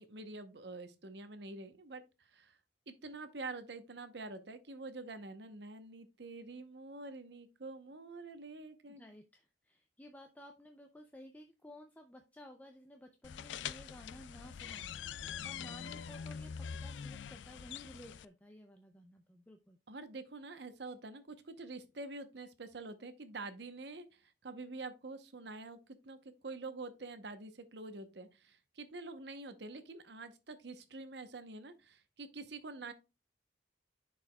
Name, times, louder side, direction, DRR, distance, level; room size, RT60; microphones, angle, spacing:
voice 1, 0.0-2.6 2.9-9.1 19.9-26.2 26.4-32.9, right 3 dB, 70° right, 0.8 m, -47 dB
voice 2, 8.9-19.8, left 1 dB, 10° left, 0.5 m, -55 dB
sound 1, 13.2-18.2, left 7 dB, 85° left, 0.4 m, -44 dB
11.0 x 4.7 x 2.2 m
head